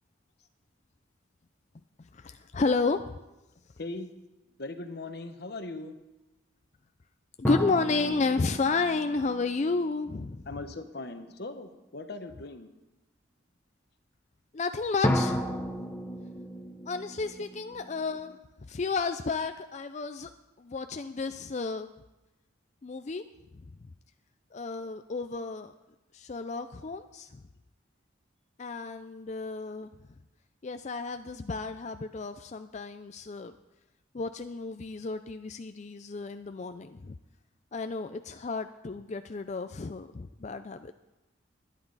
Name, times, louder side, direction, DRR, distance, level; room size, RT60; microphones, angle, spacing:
voice 1, 2.0-3.1 7.4-10.5 14.5-15.6 16.9-18.4 18.7-20.3 20.6-21.9 22.8-23.2 24.5-25.7 26.1-27.4 28.6-29.9 30.6-33.5 34.1-37.2 37.7-40.9, left 4 dB, 35° left, 9 dB, 0.4 m, -32 dB
voice 2, 3.8-4.1 4.6-5.9 10.5-12.7, left 2 dB, 55° left, 8 dB, 1.1 m, -39 dB
sound 1, 7.4-10.8 15.0-18.4, equal, 10° left, 1.3 m, -33 dB
20.0 x 10.0 x 4.0 m, 1.0 s
head